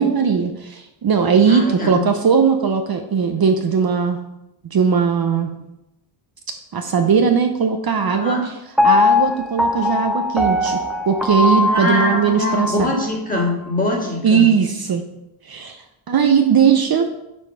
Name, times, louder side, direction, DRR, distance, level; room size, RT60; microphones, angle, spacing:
voice 1, 0.0-4.2 4.7-5.5 6.7-8.5 8.8-10.8 11.1-12.9 14.2-15.0 15.4-15.8 16.1-17.1, right 6 dB, 50° right, 5 dB, 0.6 m, -18 dB
voice 2, 1.5-2.1 8.1-8.4 11.6-14.5, left 2 dB, 15° left, -2 dB, 1.9 m, -23 dB
Piano, 8.8-12.9 13.4-13.5, left 3 dB, ahead, 0.5 m, -19 dB
6.2 x 5.0 x 5.5 m, 0.89 s
wide cardioid pair, 130°, 48 cm